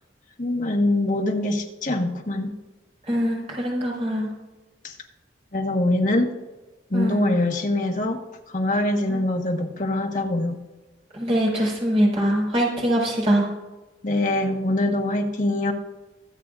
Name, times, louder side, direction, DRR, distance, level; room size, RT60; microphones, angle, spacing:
voice 1, 0.4-2.5 4.8-4.9 5.5-6.3 6.9-8.2 8.5-10.6 14.0-15.7, left 1 dB, 45° left, 3 dB, 1.3 m, -23 dB
voice 2, 3.0-4.3 6.9-7.3 9.1-9.2 11.1-13.5, equal, 35° right, -4 dB, 4.5 m, -23 dB
22.5 x 8.6 x 2.5 m, 1.1 s
head